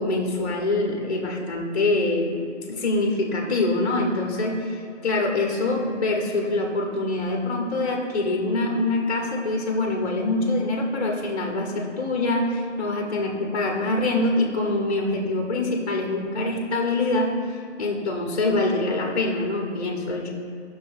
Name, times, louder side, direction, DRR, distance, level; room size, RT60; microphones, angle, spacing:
voice 1, 0.0-2.4 2.7-17.4 17.8-20.3, left 2 dB, 30° left, -1 dB, 1.1 m, -24 dB
17.5 x 6.3 x 2.6 m, 2.2 s
figure-of-eight pair, 160°, 37 cm